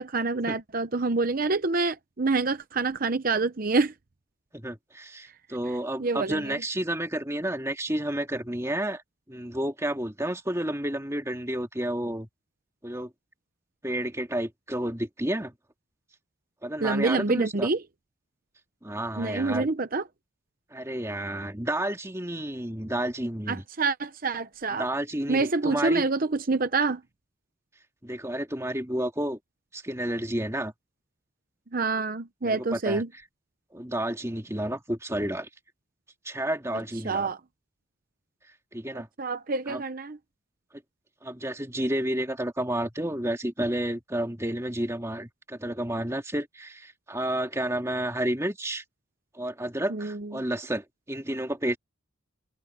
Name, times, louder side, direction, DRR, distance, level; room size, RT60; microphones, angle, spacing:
voice 1, 0.0-3.9 6.0-6.6 16.8-17.8 19.2-20.0 23.5-24.9 25.3-27.0 31.7-33.1 37.0-37.4 39.2-40.2 49.9-50.4, right 3 dB, 45° right, 0.8 m, -27 dB
voice 2, 4.5-9.0 9.3-12.3 12.8-13.1 13.8-15.5 16.6-17.7 18.8-19.7 20.7-23.6 24.8-26.1 28.0-29.4 29.7-30.7 32.4-33.0 33.7-35.5 36.2-37.3 38.7-39.1 39.7-39.8 41.2-48.8 49.3-51.8, right 1 dB, 15° right, 2.1 m, -31 dB
head